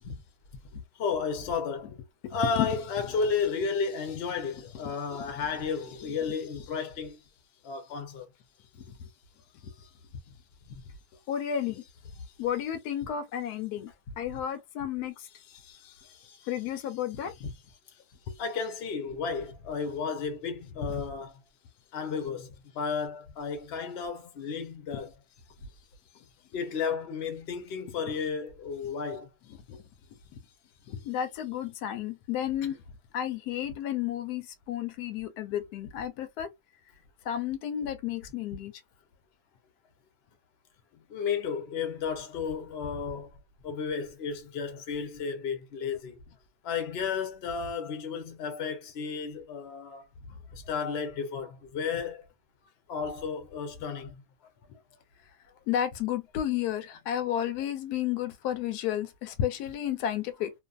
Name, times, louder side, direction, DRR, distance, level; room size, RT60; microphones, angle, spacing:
voice 1, 0.7-2.0 2.3-7.2 7.6-8.3 10.6-10.8 17.4-17.5 18.4-21.4 21.9-25.1 26.5-29.3 41.1-43.4 43.6-46.2 46.6-50.1 50.5-52.3 52.9-54.2, left 5 dB, 55° left, 0.8 m, -33 dB
voice 2, 2.2-2.7 4.8-5.2 6.0-6.1 8.7-9.1 9.6-9.7 11.3-11.9 12.4-13.9 14.2-17.3 18.3-18.4 24.9-25.0 29.7-29.8 30.9-32.8 33.1-36.5 37.3-38.7 50.3-50.4 54.7-54.8 55.7-60.5, left 10 dB, 90° left, 1.1 m, -32 dB
2.6 x 2.5 x 2.3 m
omnidirectional pair, 1.6 m